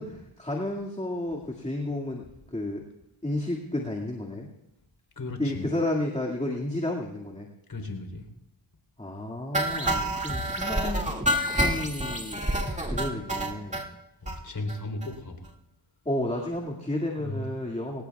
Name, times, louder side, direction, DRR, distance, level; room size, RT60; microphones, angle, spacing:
voice 1, 0.0-2.2 2.5-2.8 3.2-4.5 5.4-7.5 9.0-11.0 11.5-12.5 12.8-13.8 16.1-18.0, left 1 dB, 15° left, -1 dB, 2.1 m, -31 dB
voice 2, 5.2-5.7 7.7-8.3 14.2-15.5 17.2-17.5, left 2 dB, 45° left, 5 dB, 3.8 m, -36 dB
sound 1, 9.5-13.8 14.3-14.4 14.7-14.8 15.0-15.1 15.5-15.6, right 1 dB, 15° right, 2.2 m, -28 dB
24.5 x 18.5 x 2.4 m, 0.80 s
cardioid pair, 60°, 47 cm